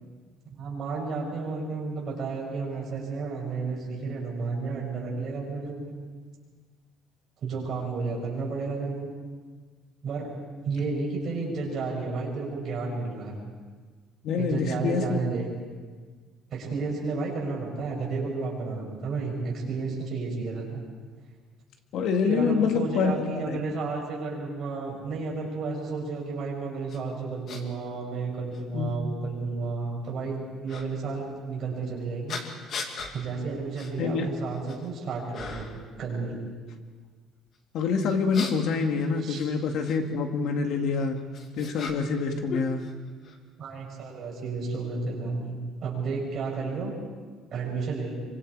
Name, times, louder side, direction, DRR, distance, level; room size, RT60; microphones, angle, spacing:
voice 1, 0.6-5.9 7.4-9.1 10.0-10.3 10.6-13.4 14.4-15.5 16.5-20.8 22.3-32.4 33.1-35.7 36.0-36.4 39.2-39.4 43.6-46.9 47.5-48.1, right 4 dB, 40° right, -2 dB, 6.8 m, -32 dB
voice 2, 14.2-15.2 21.9-23.6 28.7-29.0 34.0-34.3 37.7-41.2 41.5-42.9, left 5 dB, 60° left, 4 dB, 2.2 m, -26 dB
sound 1, 26.9-27.0 27.5-27.6 28.5-28.6 30.7-30.9 32.3-33.1 33.7-33.9 34.4-34.9 35.3-35.8 38.0-40.0 40.9-42.2 42.5-43.4, left 4 dB, 40° left, 2.2 m, -38 dB
26.0 x 24.5 x 5.0 m, 1.5 s
cardioid pair, 170°, 0 cm